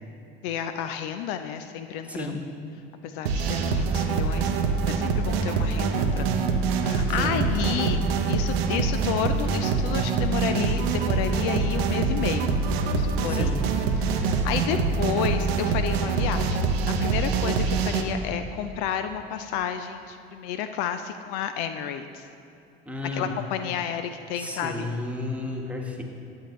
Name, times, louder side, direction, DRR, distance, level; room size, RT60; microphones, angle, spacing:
voice 1, 0.4-2.4 3.0-4.6 4.9-6.4 6.7-12.5 12.8-13.5 14.0-16.6 16.9-22.3 23.1-24.8, left 9 dB, 60° left, 8 dB, 0.5 m, -31 dB
sound 1, 3.3-18.0, right 4 dB, 70° right, 0.8 m, -25 dB
voice 2, 13.3-13.6 22.9-23.4 24.4-26.0, left 2 dB, 5° right, 0 dB, 1.3 m, -32 dB
11.5 x 7.9 x 3.1 m, 2.7 s
hypercardioid pair, 70°, 31 cm